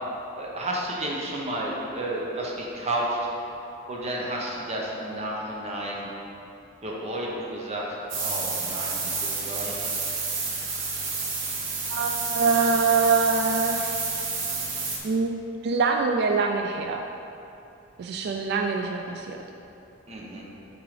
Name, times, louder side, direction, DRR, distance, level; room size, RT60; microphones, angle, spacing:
voice 1, 0.4-3.5 3.9-6.1 6.8-9.9 20.1-20.4, right 1 dB, 35° right, -3 dB, 0.9 m, -31 dB
sound 1, 8.1-15.0, right 4 dB, 75° right, 1.0 m, -29 dB
voice 2, 11.9-14.0 15.0-17.0 18.0-19.4, right 4 dB, 55° right, 3 dB, 0.3 m, -24 dB
7.7 x 4.7 x 3.2 m, 2.8 s
head